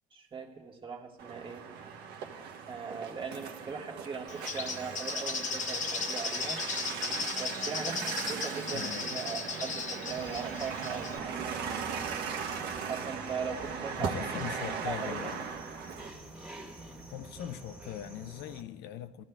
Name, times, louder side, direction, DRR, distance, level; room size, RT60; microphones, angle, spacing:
voice 1, 0.1-1.7 2.7-6.6 7.4-11.5 12.9-14.2 14.8-15.3, right 5 dB, 30° right, 1.4 m, -39 dB
sound 1, 1.2-16.1, right 6 dB, 85° right, 1.1 m, -38 dB
Bird, 4.3-11.2, left 5 dB, 45° left, 1.0 m, -36 dB
voice 2, 8.7-9.2 14.0-15.5 17.1-19.2, left 11 dB, 80° left, 0.5 m, -41 dB
sound 2, 10.1-18.6, right 1 dB, 5° right, 1.5 m, -49 dB
19.5 x 13.5 x 2.3 m
cardioid pair, 110°, 17 cm